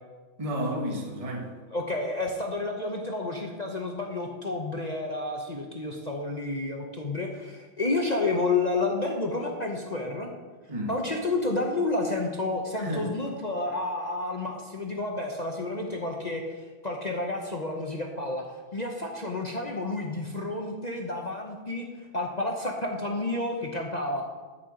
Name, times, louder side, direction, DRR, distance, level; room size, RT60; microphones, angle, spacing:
voice 1, 0.4-1.5 10.7-11.0 12.8-13.1, equal, 20° right, 0 dB, 1.4 m, -31 dB
voice 2, 1.7-10.3 10.9-24.2, left 2 dB, 45° left, 1 dB, 0.5 m, -30 dB
13.5 x 5.8 x 5.0 m, 1.3 s
omnidirectional pair, 2.1 m